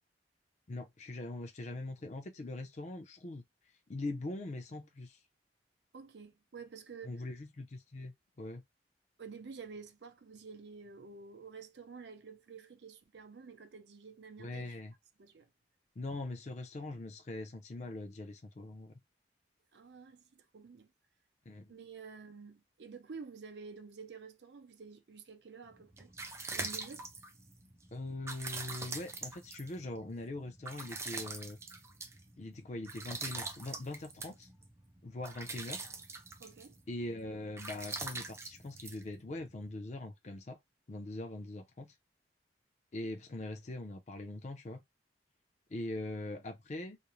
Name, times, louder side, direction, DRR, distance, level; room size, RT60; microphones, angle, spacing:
voice 1, 0.7-3.4 3.9-5.2 7.0-8.6 14.4-14.9 16.0-18.9 21.5-21.8 27.9-31.6 32.4-34.5 35.0-35.8 36.9-40.6 40.9-41.9 42.9-44.8 45.7-47.0, left 2 dB, 40° left, 0.5 m, -42 dB
voice 2, 5.9-7.2 9.2-14.8 15.2-15.5 19.7-20.9 21.7-26.1 26.5-27.1 36.4-36.8, right 5 dB, 75° right, 0.5 m, -50 dB
sound 1, 25.7-39.7, right 3 dB, 15° right, 0.4 m, -44 dB
2.5 x 2.0 x 2.9 m
head